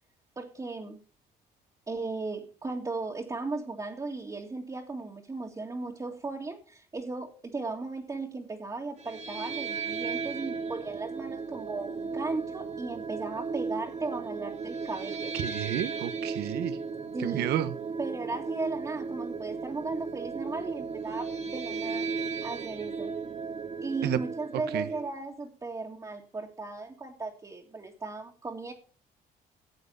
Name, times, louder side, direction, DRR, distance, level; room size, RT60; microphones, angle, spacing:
voice 1, 0.4-1.0 1.9-15.3 17.1-17.5 18.0-23.1 23.8-28.7, right 3 dB, 20° right, 2.1 m, -36 dB
sound 1, 9.0-25.1, right 5 dB, 40° right, 1.5 m, -35 dB
voice 2, 15.4-16.8 17.2-17.7 24.0-24.2 24.7-24.9, right 12 dB, 75° right, 1.1 m, -30 dB
13.5 x 8.1 x 5.5 m
cardioid pair, 110°, 17 cm